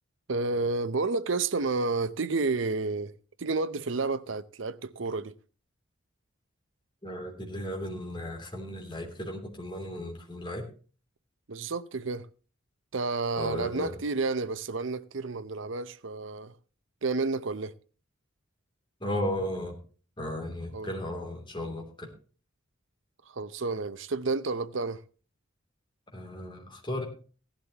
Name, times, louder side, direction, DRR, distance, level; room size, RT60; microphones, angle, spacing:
voice 1, 0.3-5.3 11.5-12.3 12.9-16.5 17.0-17.7 20.7-20.9 23.3-25.0, right 3 dB, 70° right, 0.7 m, -30 dB
voice 2, 7.0-10.7 13.4-14.0 19.0-19.8 20.2-22.1 26.1-27.0, left 1 dB, 25° left, 2.9 m, -35 dB
16.5 x 11.5 x 2.9 m
head